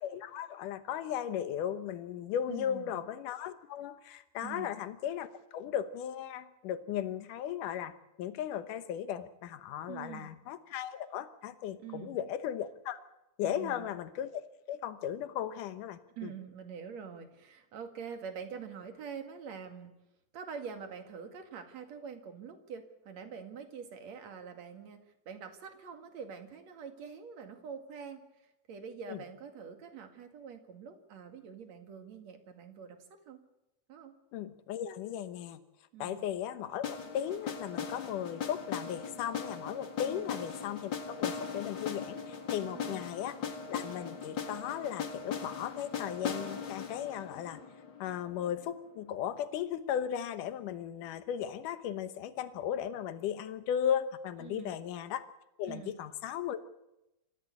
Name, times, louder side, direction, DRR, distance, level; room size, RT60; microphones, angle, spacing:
voice 1, 0.0-5.3 5.5-13.0 13.4-14.4 14.7-16.3 29.1-29.2 34.3-35.6 36.0-43.4 43.7-47.6 48.0-55.2 55.6-56.7, left 9 dB, 70° left, 11 dB, 2.6 m, -36 dB
voice 2, 2.5-2.9 4.4-4.7 9.9-10.3 11.8-12.2 13.4-13.9 16.2-20.0 20.3-25.0 25.3-28.2 28.7-33.4 33.9-34.1 35.9-36.3 40.0-40.4 42.6-43.1 54.4-54.8 55.6-55.9, right 6 dB, 55° right, 6 dB, 3.2 m, -45 dB
sound 1, 36.8-48.7, left 6 dB, 40° left, 2.0 m, -39 dB
27.0 x 15.0 x 8.5 m, 0.93 s
omnidirectional pair, 3.9 m